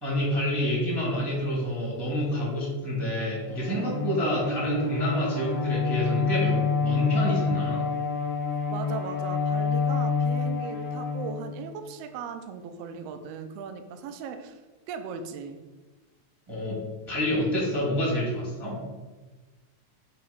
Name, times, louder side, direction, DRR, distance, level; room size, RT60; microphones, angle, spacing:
voice 1, 0.0-7.8 16.5-18.9, equal, 15° right, -5 dB, 0.8 m, -28 dB
Bowed string instrument, 3.5-11.9, left 5 dB, 60° left, 1.8 m, -28 dB
voice 2, 8.5-14.6 14.9-15.6, right 7 dB, 80° right, 7 dB, 1.4 m, -38 dB
6.8 x 2.9 x 5.6 m, 1.2 s
omnidirectional pair, 3.4 m